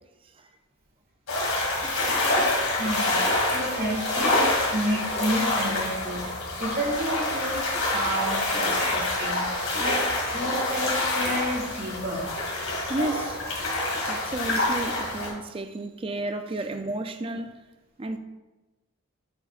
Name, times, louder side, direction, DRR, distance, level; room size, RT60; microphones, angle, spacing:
sound 1, 1.3-15.3, left 2 dB, 85° left, 2.4 m, -26 dB
voice 1, 2.8-6.3 6.6-10.0 10.3-12.3, right 1 dB, 45° right, 1.9 m, -31 dB
voice 2, 12.9-13.4 14.1-17.5 18.0-18.2, right 2 dB, 25° right, 0.4 m, -32 dB
8.0 x 7.0 x 2.5 m
head